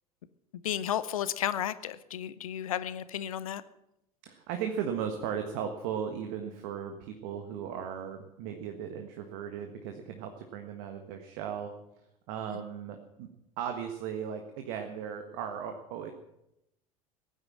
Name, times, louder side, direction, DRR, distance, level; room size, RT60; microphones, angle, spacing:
voice 1, 0.6-3.6 12.5-12.6, left 11 dB, 70° left, 15 dB, 0.8 m, -33 dB
voice 2, 4.2-11.7 12.3-13.3 13.6-16.1, right 8 dB, 60° right, 5 dB, 1.5 m, -36 dB
16.5 x 9.5 x 7.5 m, 0.84 s
figure-of-eight pair, 70°, 18 cm